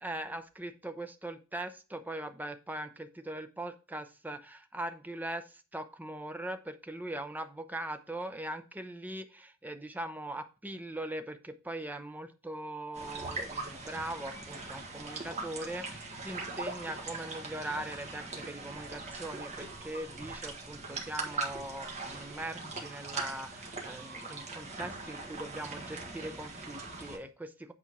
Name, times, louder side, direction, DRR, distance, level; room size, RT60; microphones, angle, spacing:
voice 1, 0.0-27.7, right 1 dB, 10° right, 8 dB, 0.6 m, -41 dB
sound 1, 12.9-27.2, right 3 dB, 35° right, 1.6 m, -41 dB
8.4 x 4.3 x 4.6 m, 0.32 s
head